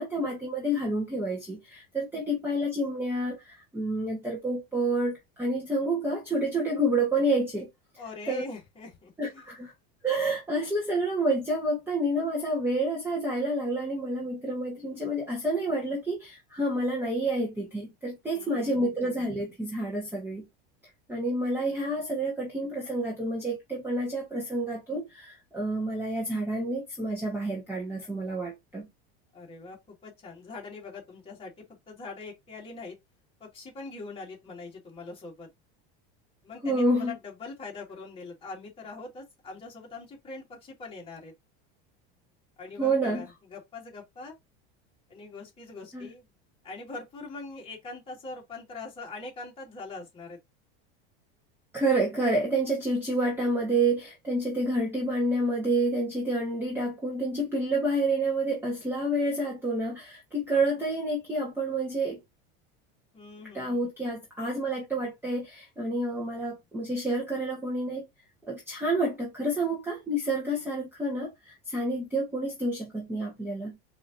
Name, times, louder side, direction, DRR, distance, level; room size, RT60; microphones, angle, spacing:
voice 1, 0.0-7.7 8.3-8.4 9.2-9.7 10.0-20.4 21.1-28.9 36.6-37.1 42.8-43.2 45.9-46.1 51.7-62.2 63.5-68.0 68.5-73.7, right 1 dB, 5° right, 1.2 m, -29 dB
voice 2, 8.0-9.4 18.3-18.8 29.3-31.5 31.9-33.0 33.4-35.5 36.4-41.3 42.6-44.3 45.1-46.2 46.6-50.4 63.1-63.9, left 3 dB, 20° left, 2.0 m, -42 dB
4.8 x 2.9 x 2.6 m
supercardioid pair, 150°, 29 cm